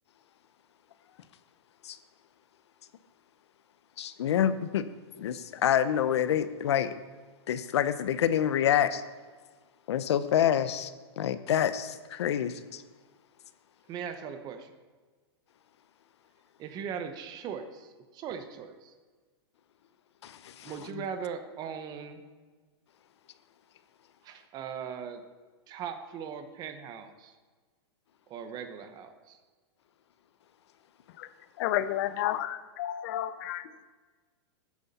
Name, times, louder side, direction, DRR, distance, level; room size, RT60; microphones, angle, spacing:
voice 1, 4.0-4.9 5.2-6.9 7.5-9.0 9.9-10.9 11.2-12.8 20.2-20.7, left 10 dB, 80° left, 13 dB, 0.8 m, -27 dB
voice 2, 13.9-14.7 16.6-18.9 20.6-22.3 24.2-25.2 25.7-27.4 28.3-29.4, right 7 dB, 30° right, 9 dB, 0.9 m, -39 dB
voice 3, 31.6-33.7, left 13 dB, 50° left, 14 dB, 0.6 m, -31 dB
13.5 x 9.5 x 4.2 m, 1.4 s
hypercardioid pair, 145°, 14 cm